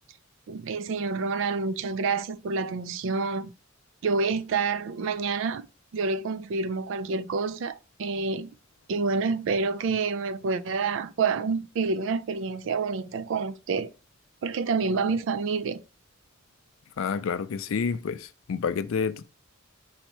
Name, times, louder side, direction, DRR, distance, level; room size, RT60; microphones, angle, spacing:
voice 1, 0.5-3.5 4.0-5.7 5.9-8.5 8.9-13.9 14.4-15.8, right 4 dB, 65° right, 0.4 m, -28 dB
voice 2, 17.0-19.3, left 6 dB, 80° left, 0.4 m, -29 dB
4.0 x 2.7 x 4.5 m
head